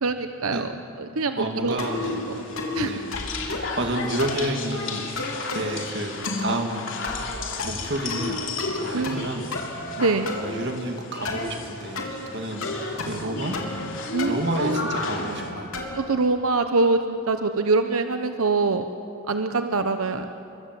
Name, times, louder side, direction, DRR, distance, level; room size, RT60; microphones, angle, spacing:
voice 1, 0.0-0.7 1.2-1.8 2.3-2.4 2.7-2.9 8.9-9.5 10.0-10.4 14.1-14.9 16.0-18.9 19.3-20.3, right 3 dB, 85° right, 8 dB, 0.9 m, -24 dB
voice 2, 1.4-2.2 2.8-3.2 3.8-5.2 5.5-7.1 7.6-8.4 8.7-9.5 10.4-12.1 12.3-13.6 14.3-15.8, right 1 dB, 55° right, 4 dB, 2.5 m, -30 dB
electronic buttons assorted, 1.8-2.1 2.6-2.8 3.1-3.8 4.2-4.5 5.2-5.7 6.2-6.6 7.0-7.3 7.6-8.3 8.6-9.2 9.5-10.4 11.2-11.5 11.9-12.1 12.6-13.3 13.5-13.9 14.2-16.0, left 2 dB, 80° left, 3.4 m, -32 dB
sound 1, 1.8-15.5, left 3 dB, 60° left, 3.1 m, -34 dB
28.0 x 23.5 x 7.7 m, 2.9 s
head